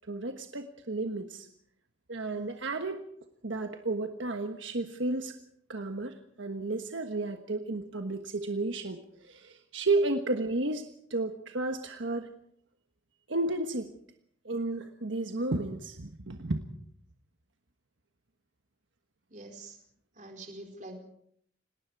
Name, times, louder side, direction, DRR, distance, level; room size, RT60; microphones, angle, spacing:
voice 1, 0.1-1.5 2.1-3.0 3.4-5.3 5.7-12.3 13.3-13.9 14.4-16.6, right 2 dB, 80° right, 6 dB, 1.4 m, -32 dB
voice 2, 19.3-19.8 20.1-21.0, right 2 dB, 40° right, 3 dB, 4.5 m, -45 dB
29.5 x 18.5 x 4.8 m, 0.66 s
head